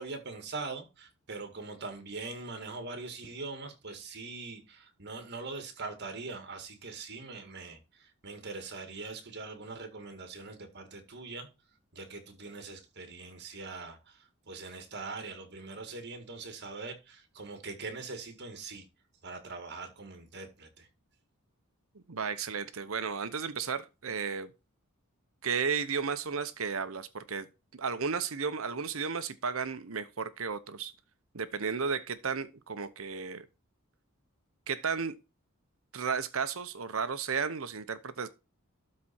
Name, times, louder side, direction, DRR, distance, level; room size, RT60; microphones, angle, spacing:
voice 1, 0.0-11.5 11.9-18.9 19.2-20.9, right 3 dB, 50° right, 2.1 m, -42 dB
voice 2, 21.9-24.5 25.4-27.5 27.7-30.9 31.3-33.5 34.7-35.2 35.9-38.3, right 5 dB, 70° right, 0.9 m, -33 dB
12.5 x 4.2 x 4.3 m
head